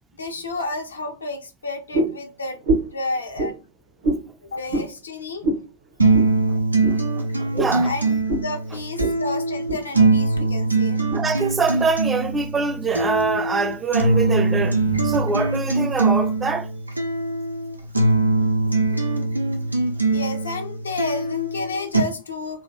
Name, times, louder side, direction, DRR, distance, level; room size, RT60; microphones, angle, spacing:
voice 1, 0.2-2.7 2.9-3.6 4.4-5.5 7.8-11.0 20.1-22.6, left 2 dB, 75° left, 0.6 m, -31 dB
sound 1, 1.9-2.2 2.6-3.0 3.4-3.5 4.0-4.2 4.7-4.9 5.4-5.6 6.1-6.3 6.8-7.0 7.5-7.8 8.3-8.5 9.0-9.2 9.5-9.8 10.3-10.5 11.1-11.2, right 1 dB, 55° right, 0.8 m, -24 dB
sound 2, 6.0-22.0, right 3 dB, 85° right, 0.5 m, -22 dB
voice 2, 7.2-7.9 8.7-8.8 11.1-16.7, right 4 dB, 15° right, 0.4 m, -24 dB
2.7 x 2.3 x 3.0 m
figure-of-eight pair, 90°, 0 cm